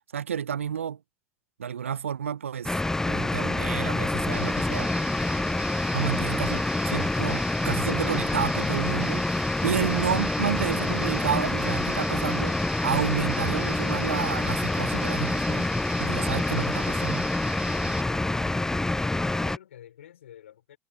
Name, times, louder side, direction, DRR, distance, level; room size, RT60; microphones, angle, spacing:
voice 1, 0.1-1.0 1.6-2.7 3.1-4.9 5.9-12.6 12.8-15.7 16.0-17.3, right 8 dB, 85° right, 0.6 m, -30 dB
sound 1, 2.6-19.6, left 2 dB, 5° left, 0.4 m, -27 dB
Guitar, 4.3-18.0, right 4 dB, 15° right, 1.7 m, -41 dB
voice 2, 19.4-20.8, left 11 dB, 75° left, 4.3 m, -50 dB
hypercardioid pair, 80°, 7 cm